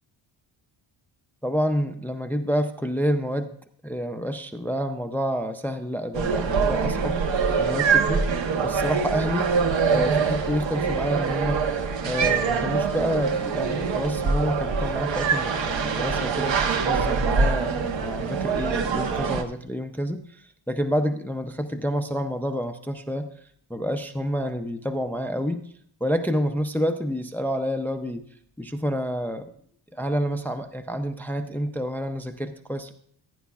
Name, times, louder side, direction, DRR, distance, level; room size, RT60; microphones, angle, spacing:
voice 1, 1.4-3.5 3.8-9.5 9.9-11.6 12.0-23.3 23.7-25.6 26.0-28.3 28.6-29.5 29.9-32.9, equal, 5° left, 8 dB, 0.4 m, -28 dB
sound 1, 6.1-19.4, right 5 dB, 65° right, 1.1 m, -24 dB
15.5 x 9.3 x 2.3 m, 0.62 s
cardioid pair, 120°, 48 cm